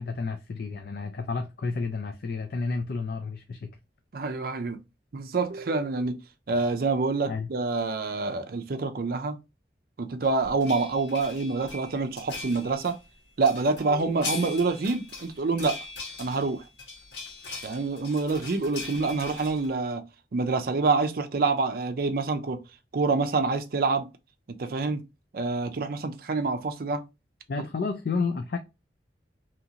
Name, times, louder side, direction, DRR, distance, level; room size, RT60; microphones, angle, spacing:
voice 1, 0.0-3.7 7.3-7.5 27.5-28.6, left 4 dB, 55° left, 0.4 m, -31 dB
voice 2, 4.1-4.8 5.1-6.2 6.5-9.4 10.0-13.0 13.4-15.8 16.2-16.6 17.6-22.6 22.9-24.1 24.5-25.0 25.3-27.0, right 3 dB, 55° right, 0.5 m, -27 dB
sound 1, 10.2-13.0 13.4-19.7, left 3 dB, 75° left, 1.3 m, -40 dB
2.8 x 2.5 x 2.8 m
head